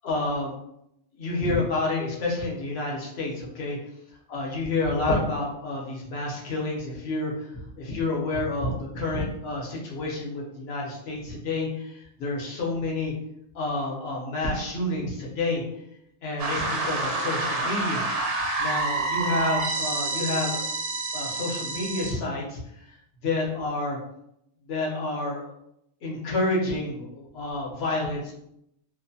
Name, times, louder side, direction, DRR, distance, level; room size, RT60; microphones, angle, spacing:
voice 1, 0.0-0.5 1.2-3.8 4.3-13.1 13.5-15.6 16.2-18.1 18.6-20.7 21.1-23.0 23.2-24.0 24.7-25.5 26.0-28.3, left 2 dB, 65° left, -2 dB, 0.9 m, -29 dB
sound 1, 16.4-22.1, right 3 dB, 90° right, 0.9 m, -28 dB
2.5 x 2.1 x 2.6 m, 0.79 s
omnidirectional pair, 1.2 m